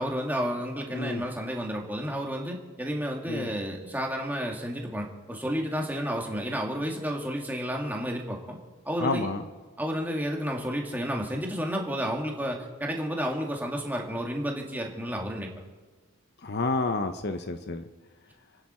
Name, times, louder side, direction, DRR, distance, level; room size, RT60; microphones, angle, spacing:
voice 1, 0.0-8.6 8.9-9.3 9.8-15.5, equal, 10° right, 0 dB, 2.0 m, -31 dB
voice 2, 0.9-1.2 3.3-3.5 9.0-9.5 16.4-17.8, left 3 dB, 50° left, 8 dB, 0.8 m, -29 dB
30.0 x 9.9 x 4.4 m, 1.3 s
head